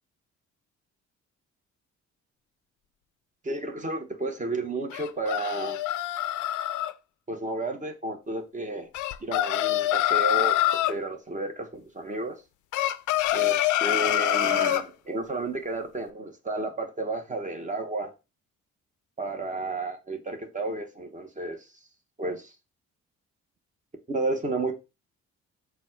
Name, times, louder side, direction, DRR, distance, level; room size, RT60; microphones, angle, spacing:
voice 1, 3.4-5.8 7.3-8.9 9.2-12.4 13.3-18.1 19.2-21.6 22.2-22.5 24.1-24.7, right 2 dB, 25° right, 1.0 m, -32 dB
sound 1, 4.9-6.9 8.9-11.0 12.7-14.9, left 14 dB, 80° left, 0.5 m, -25 dB
4.1 x 2.3 x 4.4 m
cardioid pair, 90°, 30 cm